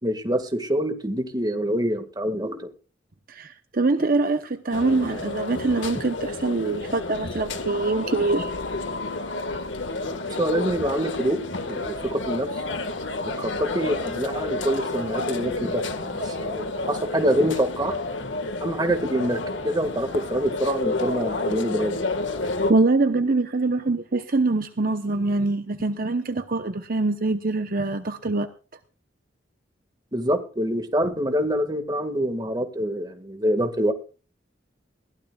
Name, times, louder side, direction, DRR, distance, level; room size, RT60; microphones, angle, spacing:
voice 1, 0.0-2.7 10.4-11.4 11.7-12.6 13.3-17.9 18.6-19.4 19.6-22.0 30.1-33.9, equal, 20° right, 7 dB, 1.9 m, -25 dB
voice 2, 3.3-8.5 22.7-28.5, right 3 dB, 50° right, 8 dB, 0.9 m, -24 dB
sound 1, 4.7-22.7, left 2 dB, 75° left, 1.8 m, -30 dB
21.0 x 16.0 x 2.4 m, 0.35 s
head